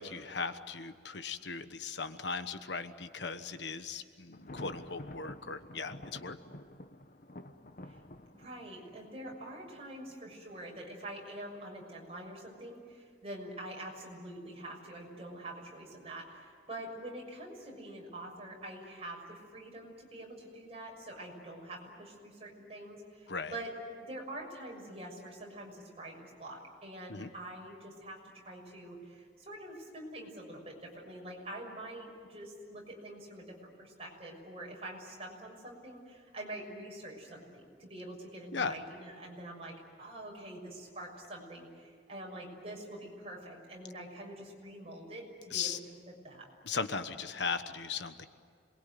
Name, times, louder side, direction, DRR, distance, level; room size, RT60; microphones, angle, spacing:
voice 1, 0.0-6.4 23.3-23.6 27.1-27.3 38.5-38.8 45.5-45.8 46.6-48.3, left 5 dB, 70° left, 10 dB, 1.2 m, -37 dB
Thunder, 4.3-10.1, left 1 dB, 45° left, 1.1 m, -49 dB
voice 2, 8.3-45.7 46.2-46.5, right 1 dB, 35° right, -1 dB, 6.4 m, -45 dB
27.0 x 21.5 x 9.4 m, 2.1 s
head